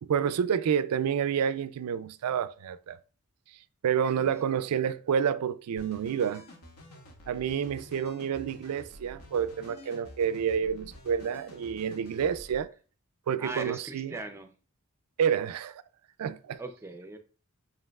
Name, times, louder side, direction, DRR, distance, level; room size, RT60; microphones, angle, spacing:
voice 1, 0.0-3.0 3.8-6.5 7.3-12.7 13.3-14.1 15.2-15.8 16.2-16.6, right 7 dB, 85° right, 0.4 m, -29 dB
sound 1, 5.8-12.6, left 1 dB, 90° left, 1.1 m, -50 dB
voice 2, 13.4-14.5 16.6-17.2, right 3 dB, 10° right, 0.3 m, -39 dB
7.4 x 2.8 x 2.3 m
head